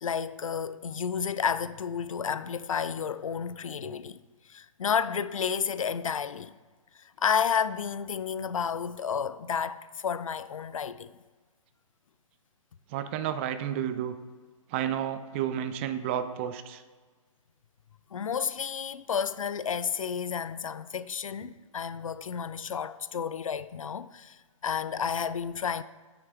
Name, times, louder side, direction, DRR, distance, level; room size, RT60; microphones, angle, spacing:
voice 1, 0.0-4.2 4.5-6.6 7.0-11.1 18.1-25.8, left 7 dB, 70° left, 0.4 m, -31 dB
voice 2, 12.9-14.1 14.7-16.8, right 10 dB, 20° right, 0.4 m, -31 dB
9.4 x 5.9 x 3.4 m
figure-of-eight pair, 130°, 18 cm